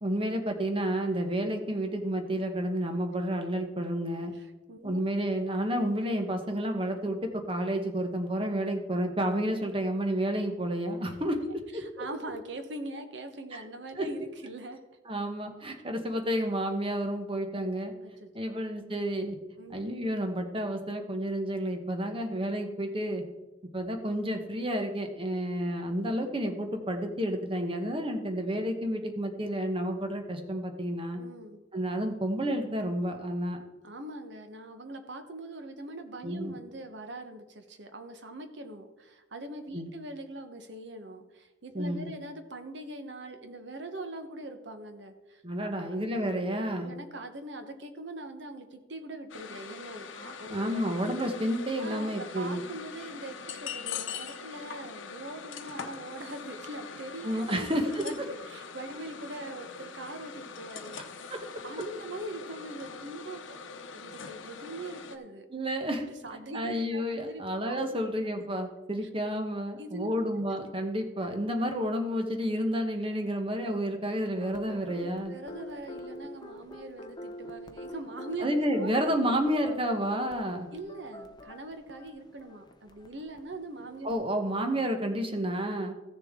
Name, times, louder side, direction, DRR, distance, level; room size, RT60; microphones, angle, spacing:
voice 1, 0.0-4.3 4.8-11.4 11.7-12.0 13.5-13.6 13.9-14.1 15.1-17.9 18.3-19.4 19.7-23.2 23.7-31.2 31.7-33.6 36.2-36.6 39.7-39.9 41.7-42.1 45.4-46.9 50.5-52.6 57.2-58.0 61.3-61.4 65.5-66.0 66.5-75.3 78.4-80.7 84.0-85.9, equal, 30° right, 5 dB, 1.1 m, -30 dB
voice 2, 4.3-5.0 11.7-14.8 18.0-18.6 19.6-19.8 31.2-31.6 33.8-46.0 46.8-50.9 51.8-61.3 61.6-63.4 63.9-65.5 66.0-68.0 69.8-70.3 75.0-78.9 79.2-79.3 80.7-84.1, right 2 dB, 65° right, 7 dB, 1.1 m, -42 dB
sound 1, 49.3-65.2, left 6 dB, 80° left, 0.8 m, -43 dB
sound 2, 74.4-84.2, left 1 dB, 20° left, 0.7 m, -45 dB
15.0 x 6.8 x 3.7 m, 1.1 s
head